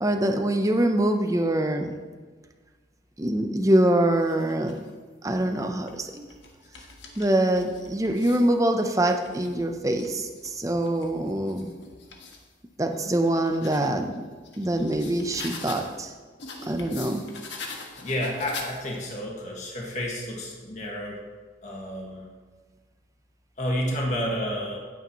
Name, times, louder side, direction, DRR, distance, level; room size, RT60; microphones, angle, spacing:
voice 1, 0.0-1.9 3.2-4.8 5.2-6.2 7.2-11.7 12.8-14.2 14.6-16.1 16.6-17.2, right 1 dB, 15° right, 5 dB, 0.7 m, -24 dB
sound 1, 4.1-4.9 5.6-8.5 9.0-12.4 12.9-16.0 16.4-19.1, left 4 dB, 80° left, 1.5 m, -44 dB
voice 2, 18.0-21.2 21.6-22.2 23.6-24.8, equal, 40° left, -2 dB, 1.8 m, -30 dB
16.0 x 8.6 x 3.1 m, 1.5 s
head